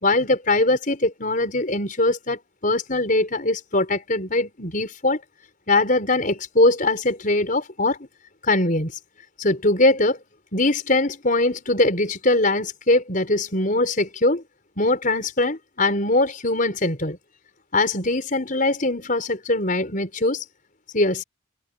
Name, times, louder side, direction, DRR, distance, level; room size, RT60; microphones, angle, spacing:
voice 1, 0.0-5.2 5.7-8.0 8.4-8.9 9.4-10.2 10.5-14.4 14.8-17.2 17.7-20.4 20.9-21.2, left 2 dB, 45° left, 5.7 m, -21 dB
head